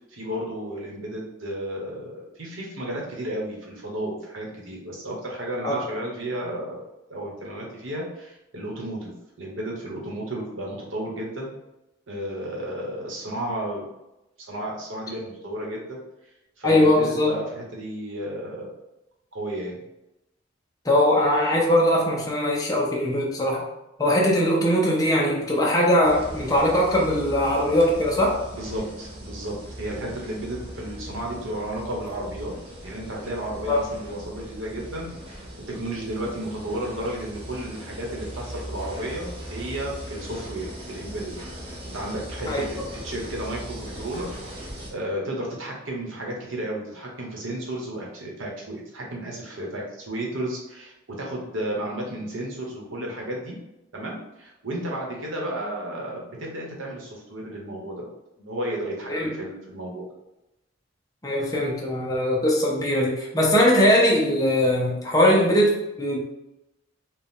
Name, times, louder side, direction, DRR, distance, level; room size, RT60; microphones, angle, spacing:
voice 1, 0.1-6.8 7.1-11.6 12.1-13.9 14.4-16.0 16.6-18.7 19.3-19.8 28.5-35.4 35.7-41.3 41.8-53.6 53.9-58.1 58.4-60.1, right 1 dB, 75° right, -2 dB, 1.2 m, -33 dB
voice 2, 16.6-17.3 20.8-23.6 24.0-28.4 33.7-33.8 42.5-42.8 59.1-59.3 61.2-66.2, left 1 dB, 20° left, -3 dB, 0.6 m, -21 dB
sound 1, 26.0-44.9, equal, 30° right, 0.8 m, -39 dB
4.5 x 2.4 x 3.6 m, 0.92 s
head